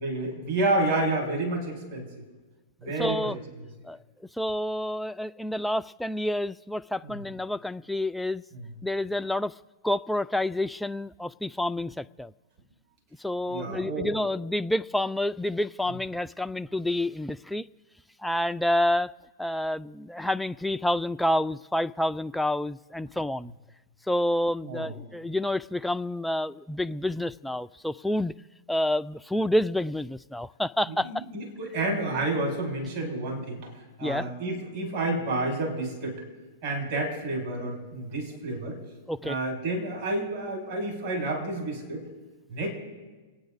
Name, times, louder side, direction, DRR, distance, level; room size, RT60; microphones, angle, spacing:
voice 1, 0.0-2.1 2.8-3.4 7.0-7.2 8.5-8.7 13.5-14.1 24.7-24.9 30.9-33.7 34.0-36.2 36.6-38.8 39.2-42.0 42.5-42.7, right 2 dB, 60° right, -1 dB, 6.1 m, -30 dB
voice 2, 2.8-3.4 3.8-4.0 4.4-8.4 8.8-9.5 9.8-12.3 13.2-17.7 18.2-19.1 19.4-23.5 24.1-28.3 28.7-31.2 34.0-34.3 39.1-39.4, left 1 dB, 5° left, 11 dB, 0.3 m, -28 dB
28.5 x 9.6 x 4.0 m, 1.3 s
hypercardioid pair, 115°, 0 cm